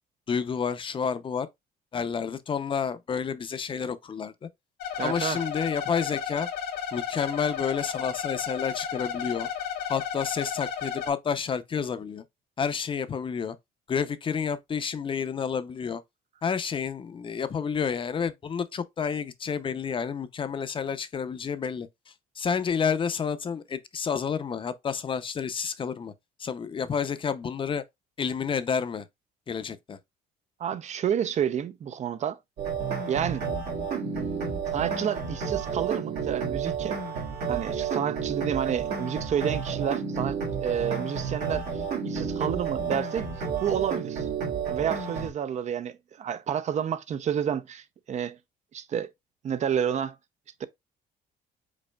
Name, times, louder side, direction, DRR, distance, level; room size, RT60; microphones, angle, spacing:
voice 1, 0.3-1.5 1.9-4.5 5.0-6.5 6.9-9.5 9.9-12.2 12.6-13.6 13.9-16.0 16.4-21.9 22.4-26.1 26.4-27.8 28.2-29.1 29.5-30.0, left 6 dB, 30° left, 0.6 m, -30 dB
sound 1, 4.8-11.1, left 8 dB, 90° left, 1.6 m, -33 dB
voice 2, 5.0-5.4 30.6-32.4 33.1-33.4 34.7-37.0 37.5-43.3 43.6-44.3 44.7-48.4 48.7-49.1 49.4-50.2 50.6-50.7, right 8 dB, 45° right, 0.6 m, -30 dB
sound 2, 32.6-45.3, right 6 dB, 75° right, 1.9 m, -31 dB
5.3 x 4.1 x 2.3 m
cardioid pair, 110°, 17 cm